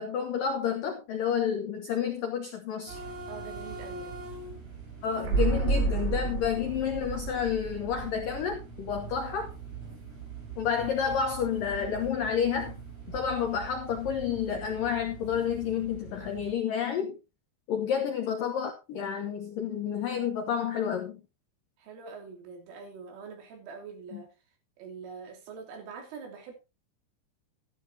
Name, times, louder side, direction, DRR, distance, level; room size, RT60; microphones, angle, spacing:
voice 1, 0.0-3.0 5.0-9.5 10.6-12.8 13.1-17.2 17.7-21.2 24.1-24.2, left 7 dB, 80° left, 2.0 m, -30 dB
sound 1, 2.9-16.5, right 5 dB, 35° right, 5.5 m, -43 dB
voice 2, 3.3-4.2 17.8-17.9 21.8-24.3 24.8-26.5, right 5 dB, 80° right, 5.6 m, -44 dB
sound 2, 5.2-9.0 9.3-9.4, right 4 dB, 60° right, 4.9 m, -30 dB
13.5 x 11.5 x 2.9 m
omnidirectional pair, 5.7 m